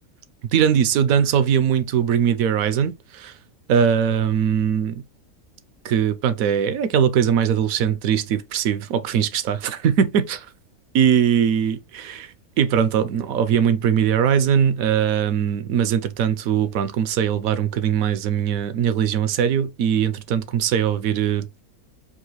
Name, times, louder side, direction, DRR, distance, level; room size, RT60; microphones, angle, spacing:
voice 1, 0.4-3.3 3.7-5.0 5.8-10.5 10.9-21.5, right 8 dB, 75° right, 1.0 m, -21 dB
4.7 x 2.5 x 3.1 m
omnidirectional pair, 1.6 m